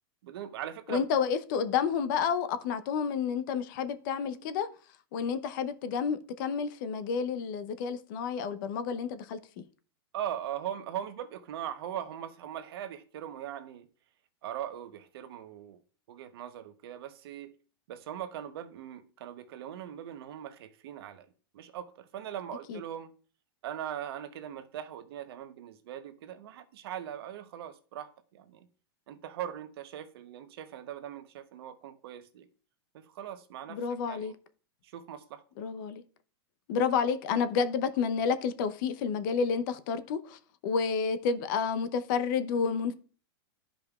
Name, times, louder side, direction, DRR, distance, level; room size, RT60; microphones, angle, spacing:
voice 1, 0.2-1.0 10.1-13.9 14.4-15.8 16.1-17.5 17.9-21.3 21.5-23.1 23.6-28.7 29.1-32.5 32.9-33.8 34.1-34.3 34.8-35.4, right 10 dB, 65° right, 0.9 m, -40 dB
voice 2, 0.9-4.7 5.1-9.4 22.7-22.8 33.7-34.3 35.6-36.0 36.7-42.9, left 6 dB, 50° left, 0.7 m, -30 dB
13.0 x 5.1 x 2.4 m
supercardioid pair, 145°, 14 cm